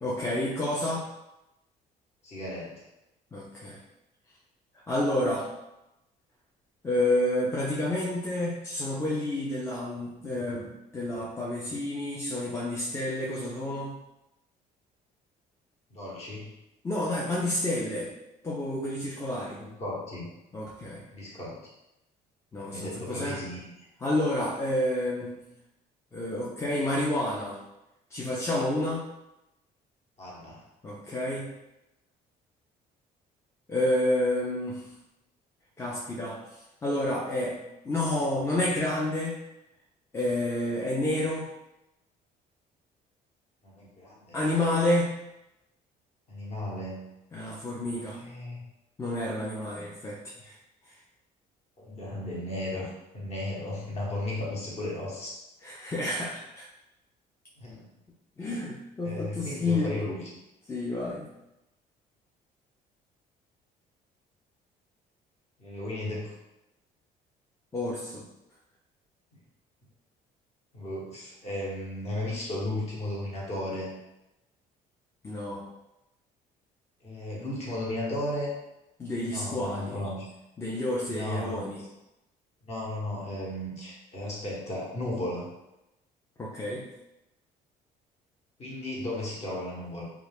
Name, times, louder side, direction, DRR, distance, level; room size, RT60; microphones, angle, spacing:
voice 1, 0.0-1.1 3.3-3.8 4.9-5.6 6.8-14.0 16.8-18.1 18.4-19.7 20.5-21.0 22.5-23.4 24.0-25.5 26.1-27.6 28.1-29.0 30.8-31.5 33.7-34.9 35.8-36.4 36.8-39.4 40.1-41.5 44.3-45.2 47.3-48.2 49.0-50.6 55.6-56.7 58.4-60.0 60.7-61.3 67.7-68.3 75.2-75.7 79.0-80.1 80.6-81.8 86.4-86.9, left 1 dB, 15° left, -5 dB, 0.4 m, -29 dB
voice 2, 2.2-2.8 15.9-16.5 19.6-20.3 21.1-21.7 22.6-23.9 30.2-30.6 43.6-44.4 46.3-47.1 48.2-48.7 51.8-52.9 53.1-55.4 57.6-57.9 59.0-60.2 65.6-66.4 70.7-73.9 77.0-78.5 79.3-80.3 81.1-81.7 82.7-85.5 88.6-90.0, left 1 dB, 40° left, -4 dB, 1.1 m, -35 dB
2.3 x 2.3 x 3.3 m, 0.90 s
cardioid pair, 110°, 17 cm